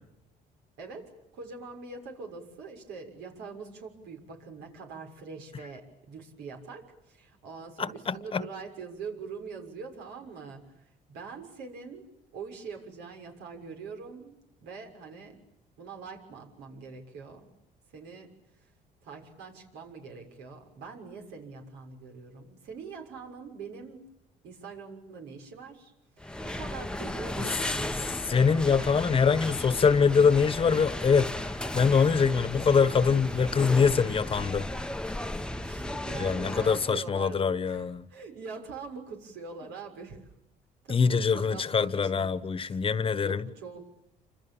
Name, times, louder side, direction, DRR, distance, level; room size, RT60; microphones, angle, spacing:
voice 1, 0.8-15.4 15.8-17.5 17.9-18.3 18.6-18.7 19.0-24.1 24.4-29.1 31.6-32.4 32.7-32.8 33.2-33.6 35.6-40.2 40.8-42.3 42.6-42.8 43.2-43.9, right 5 dB, 85° right, 6.6 m, -44 dB
voice 2, 7.8-8.4 27.4-27.5 28.3-34.7 36.2-38.0 40.9-43.4, left 5 dB, 30° left, 1.3 m, -24 dB
sound 1, 26.2-36.9, left 1 dB, 5° left, 1.0 m, -35 dB
29.0 x 26.5 x 7.3 m
cardioid pair, 110°, 17 cm